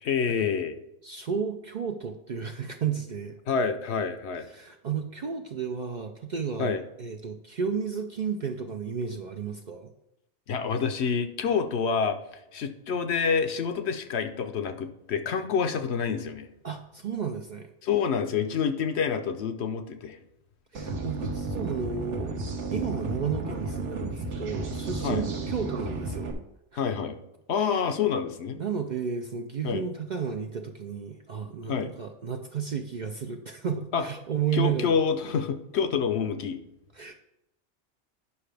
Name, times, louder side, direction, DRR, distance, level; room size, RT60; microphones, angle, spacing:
voice 1, 0.0-0.7 3.5-4.5 6.6-6.8 10.5-12.2 12.5-16.5 17.8-20.2 25.0-25.2 26.8-27.2 27.5-28.6 29.6-29.8 31.7-31.9 33.9-34.0 34.5-36.6, left 6 dB, 65° left, 8 dB, 0.9 m, -27 dB
voice 2, 1.0-3.4 4.5-9.9 16.6-17.7 20.7-22.4 22.7-26.3 26.7-26.8 27.7-27.9 28.6-35.0 36.9-37.1, right 7 dB, 55° right, 5 dB, 0.5 m, -32 dB
sound 1, 20.7-26.3, right 3 dB, 80° right, 1.3 m, -33 dB
9.7 x 5.7 x 3.3 m, 0.85 s
omnidirectional pair, 1.2 m